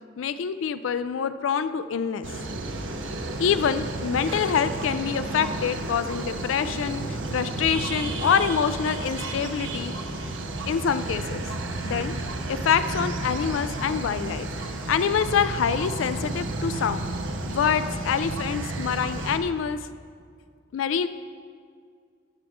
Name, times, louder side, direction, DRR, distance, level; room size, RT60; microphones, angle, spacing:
voice 1, 0.2-2.3 3.4-9.9 10.7-11.5 11.8-12.2 12.5-14.5 14.9-17.0 17.4-19.8 20.7-21.1, left 7 dB, 90° left, 12 dB, 0.4 m, -26 dB
sound 1, 2.2-19.4, right 2 dB, 80° right, 0.9 m, -32 dB
17.0 x 6.0 x 3.5 m, 2.1 s
head